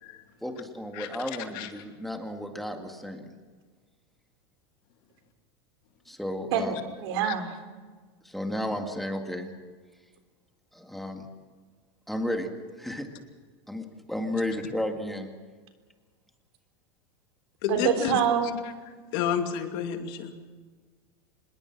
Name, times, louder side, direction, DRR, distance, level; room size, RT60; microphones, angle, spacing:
voice 1, 0.4-3.3 6.1-6.7 8.2-9.5 10.7-11.3 12.1-12.5 12.8-13.1 13.7-15.3, left 1 dB, ahead, 4 dB, 2.0 m, -33 dB
voice 2, 6.5-7.5 17.7-18.6, right 7 dB, 70° right, 7 dB, 3.6 m, -26 dB
voice 3, 17.6-18.1 19.1-20.3, left 8 dB, 55° left, 5 dB, 2.7 m, -30 dB
25.5 x 21.5 x 6.1 m, 1.5 s
supercardioid pair, 145°, 14 cm